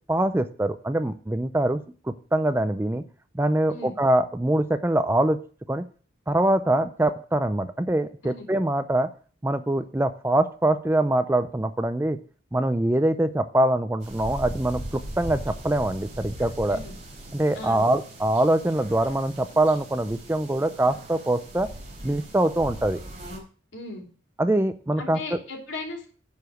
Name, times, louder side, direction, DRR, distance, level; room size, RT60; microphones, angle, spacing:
voice 1, 0.1-3.0 3.3-5.4 5.7-5.8 6.3-9.1 9.4-12.2 12.5-16.8 17.3-21.7 22.0-23.0 24.4-25.4, right 1 dB, 10° right, 10 dB, 0.4 m, -24 dB
sound 1, 14.0-23.4, right 1 dB, 40° right, 4.2 m, -39 dB
voice 2, 23.7-24.0 25.0-26.1, left 2 dB, 75° left, 0 dB, 3.4 m, -36 dB
10.5 x 4.9 x 6.3 m, 0.41 s
head